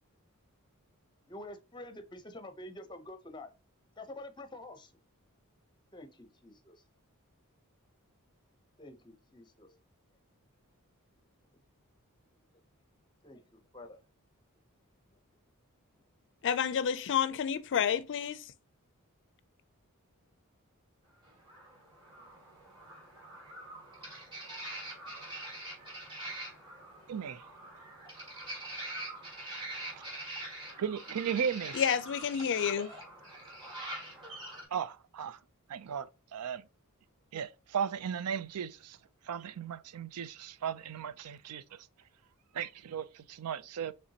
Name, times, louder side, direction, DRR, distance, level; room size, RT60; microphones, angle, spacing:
voice 1, 1.3-3.5 4.0-4.9 5.9-6.8 8.8-9.8 13.2-13.4 13.7-14.0, left 1 dB, 20° left, 0.7 m, -47 dB
voice 2, 16.4-18.5 31.7-32.9, left 8 dB, 55° left, 0.4 m, -30 dB
sound 1, 21.3-34.6, right 1 dB, 25° right, 2.3 m, -44 dB
voice 3, 27.1-27.4 29.9-30.0 30.7-31.8 34.7-35.4 35.7-36.7 37.3-39.0 39.2-41.9 42.5-43.9, right 7 dB, 85° right, 0.4 m, -36 dB
5.8 x 3.3 x 2.8 m
head